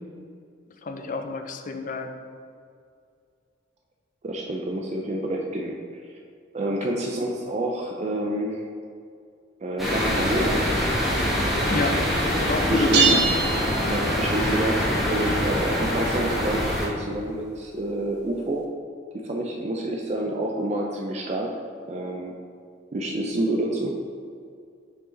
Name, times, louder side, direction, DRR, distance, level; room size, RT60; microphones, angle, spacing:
voice 1, 0.8-2.1 11.7-12.0 12.4-13.2, left 3 dB, 40° left, 6 dB, 0.5 m, -28 dB
voice 2, 4.2-5.8 6.1-6.2 6.5-8.6 9.6-10.6 12.7-13.2 13.9-18.6 19.1-21.6 21.9-22.3 22.9-24.0, right 1 dB, 35° right, 0 dB, 0.4 m, -28 dB
sound 1, 9.8-16.9, equal, ahead, 1.3 m, -24 dB
sound 2, 12.9-14.5, right 5 dB, 55° right, 0.8 m, -24 dB
6.0 x 4.8 x 3.8 m, 2.3 s
head